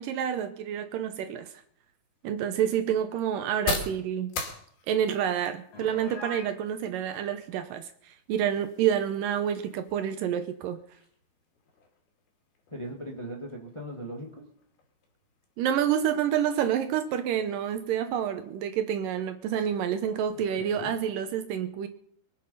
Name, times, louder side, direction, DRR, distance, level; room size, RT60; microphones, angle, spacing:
voice 1, 0.0-1.5 2.2-4.4 4.9-10.8 15.6-21.9, right 9 dB, 75° right, 9 dB, 2.2 m, -28 dB
sound 1, 1.5-19.1, left 4 dB, 70° left, 4.3 m, -43 dB
Piano, 5.7-6.5, left 2 dB, 45° left, 4.0 m, -40 dB
voice 2, 12.7-14.4 20.3-21.0, equal, 20° left, 1 dB, 0.7 m, -39 dB
23.5 x 8.5 x 5.6 m, 0.64 s
omnidirectional pair, 4.4 m